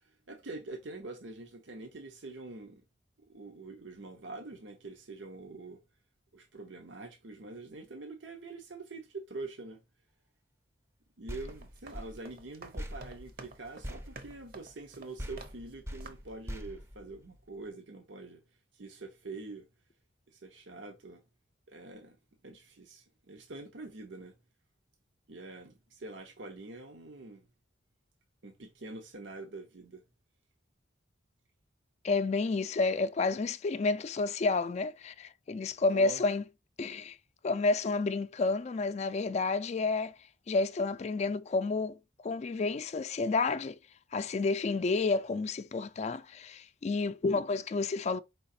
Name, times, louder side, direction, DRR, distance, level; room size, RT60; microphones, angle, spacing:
voice 1, 0.3-2.8 3.3-5.8 6.3-9.8 11.2-18.4 18.7-19.7 20.3-21.2 21.7-22.2 22.4-24.3 25.3-27.4 28.4-30.0 35.9-36.2, right 3 dB, 85° right, 0.9 m, -45 dB
sound 1, 11.3-14.9 15.2-17.7, equal, 15° right, 0.5 m, -44 dB
sound 2, 11.4-15.7 16.0-16.4, right 3 dB, 55° right, 0.8 m, -51 dB
voice 2, 32.0-36.4 36.8-37.2 37.4-40.1 40.5-42.0 42.2-43.8 44.1-48.2, left 3 dB, 35° left, 0.3 m, -30 dB
4.8 x 3.9 x 2.6 m
head